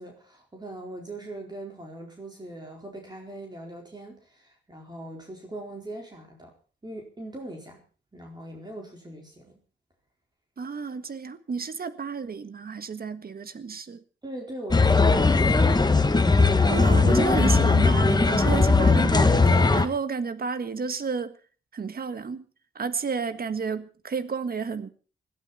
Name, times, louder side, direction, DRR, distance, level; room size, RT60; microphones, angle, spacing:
voice 1, 0.0-6.5 6.8-7.8 8.1-9.5 14.2-15.7, right 1 dB, 20° right, 4.4 m, -40 dB
voice 2, 10.6-14.0 16.6-21.3 21.7-22.4 22.7-24.9, right 5 dB, 50° right, 1.6 m, -31 dB
sound 1, 14.7-19.9, left 3 dB, 20° left, 1.4 m, -19 dB
21.0 x 13.5 x 4.3 m
wide cardioid pair, 105°, 20 cm